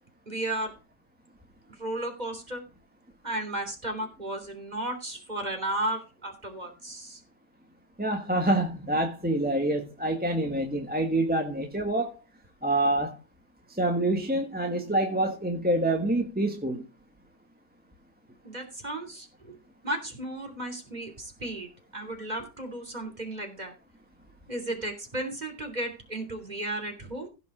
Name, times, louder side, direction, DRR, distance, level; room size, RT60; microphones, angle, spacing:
voice 1, 0.3-0.7 1.8-2.6 3.2-7.2 18.4-19.6 19.8-23.7 24.5-27.3, right 1 dB, 25° right, 3.1 m, -34 dB
voice 2, 8.0-12.1 12.6-13.1 13.8-16.9, right 1 dB, 5° right, 1.2 m, -26 dB
16.0 x 5.7 x 4.9 m
omnidirectional pair, 1.9 m